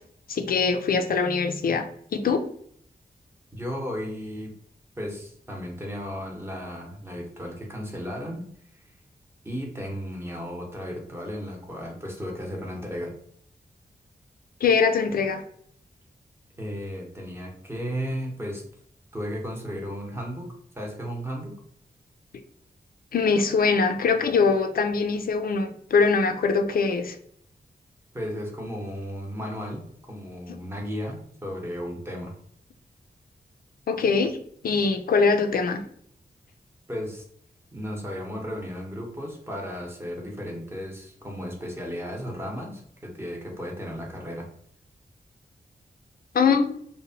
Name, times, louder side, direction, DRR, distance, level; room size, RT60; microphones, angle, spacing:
voice 1, 0.3-1.8 2.1-2.4 14.6-15.4 23.1-27.2 33.9-34.4 34.6-35.8 46.3-46.8, left 5 dB, 65° left, 6 dB, 0.4 m, -22 dB
voice 2, 3.5-4.5 5.0-8.4 8.7-8.8 9.4-13.1 16.6-18.6 19.1-20.5 20.7-21.5 28.1-32.3 36.9-37.2 37.7-44.5, equal, 15° right, -1 dB, 0.8 m, -34 dB
2.9 x 2.1 x 2.7 m, 0.62 s
wide cardioid pair, 115°, 16 cm